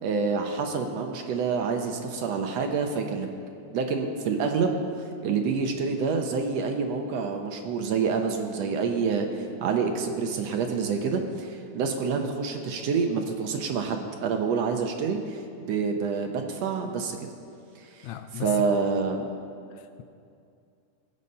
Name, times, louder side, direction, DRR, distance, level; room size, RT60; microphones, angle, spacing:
voice 1, 0.0-3.3 3.7-4.8 5.2-17.2 17.8-17.9 18.3-19.3, right 5 dB, 70° right, 1.8 m, -27 dB
voice 2, 18.0-18.8 19.7-20.0, left 11 dB, 80° left, 1.8 m, -37 dB
18.5 x 8.1 x 5.4 m
omnidirectional pair, 3.4 m